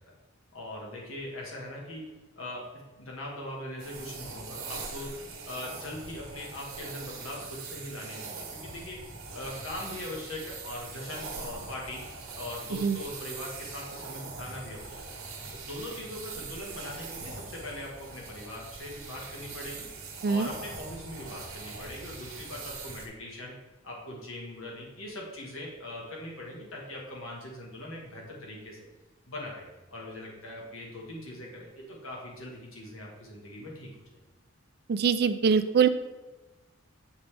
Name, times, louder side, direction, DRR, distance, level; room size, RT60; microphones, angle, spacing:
voice 1, 0.5-2.1 2.4-9.0 9.3-12.1 12.3-15.1 15.5-19.9 20.2-23.5 23.8-28.8 29.3-33.9, left 1 dB, 80° left, -2 dB, 1.4 m, -41 dB
sound 1, 3.8-23.1, right 4 dB, 90° right, 1.2 m, -42 dB
voice 2, 34.9-35.9, right 6 dB, 50° right, 12 dB, 0.4 m, -23 dB
7.1 x 5.3 x 3.3 m, 1.2 s
head